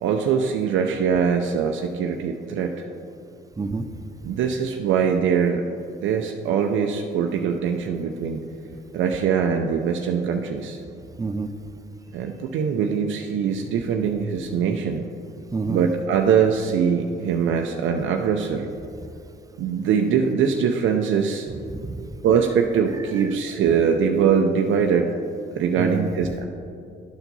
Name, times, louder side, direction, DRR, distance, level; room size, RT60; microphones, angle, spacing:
voice 1, 0.0-2.9 4.3-5.6 6.0-8.4 8.9-10.8 12.1-15.1 15.7-18.7 19.6-21.5 22.2-25.1 25.5-26.4, right 7 dB, 75° right, 3 dB, 0.5 m, -22 dB
voice 2, 3.6-3.9 11.2-11.5 15.5-15.9 19.0-19.1 21.5-22.2 25.8-26.4, right 3 dB, 20° right, 10 dB, 0.4 m, -29 dB
11.5 x 4.5 x 4.0 m, 2.6 s
cardioid pair, 90°, 20 cm